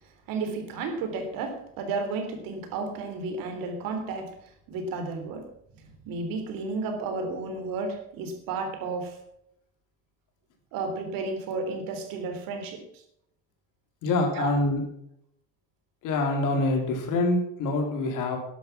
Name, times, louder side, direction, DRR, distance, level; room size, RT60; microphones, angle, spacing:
voice 1, 0.3-4.3 4.7-5.5 6.1-9.2 10.7-12.8 14.3-14.5, right 3 dB, 70° right, 6 dB, 3.6 m, -32 dB
voice 2, 14.0-14.8 16.0-18.4, left 2 dB, 60° left, 2 dB, 4.1 m, -25 dB
12.0 x 11.5 x 6.0 m, 0.75 s
cardioid pair, 150°, 35 cm